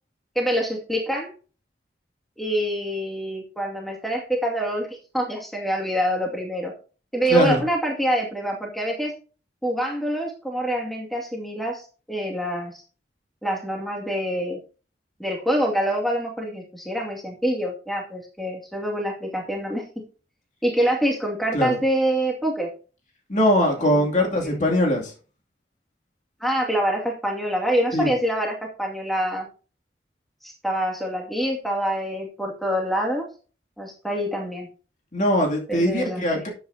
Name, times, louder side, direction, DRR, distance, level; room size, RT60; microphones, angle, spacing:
voice 1, 0.4-1.3 2.4-6.7 7.1-9.1 9.6-12.8 13.4-14.6 15.2-19.8 20.6-22.7 23.8-24.5 26.4-29.5 30.4-33.2 33.8-34.7 35.7-36.4, equal, ahead, -1 dB, 2.1 m, -26 dB
voice 2, 7.3-7.6 21.5-21.8 23.3-25.1 27.9-28.1 35.1-36.5, equal, 40° left, 0 dB, 2.4 m, -21 dB
12.0 x 8.4 x 2.7 m, 0.37 s
head